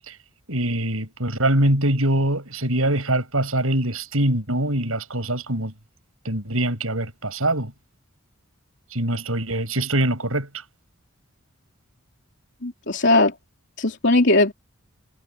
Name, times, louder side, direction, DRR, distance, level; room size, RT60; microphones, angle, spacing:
voice 1, 0.5-5.7 6.2-7.7 8.9-10.6, right 1 dB, 75° right, 7.7 m, -23 dB
voice 2, 12.6-13.3 13.8-14.5, left 2 dB, 55° left, 3.7 m, -18 dB
head